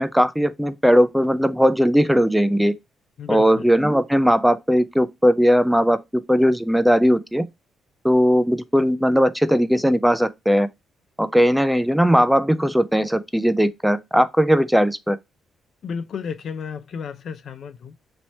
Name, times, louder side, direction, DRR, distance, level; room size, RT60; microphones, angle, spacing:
voice 1, 0.0-2.7 3.3-7.4 8.0-10.7 11.2-15.2, equal, ahead, 0.4 m, -18 dB
voice 2, 3.2-3.7 15.8-17.9, left 6 dB, 60° left, 0.4 m, -32 dB
3.2 x 2.9 x 4.1 m
cardioid pair, 90°, 0 cm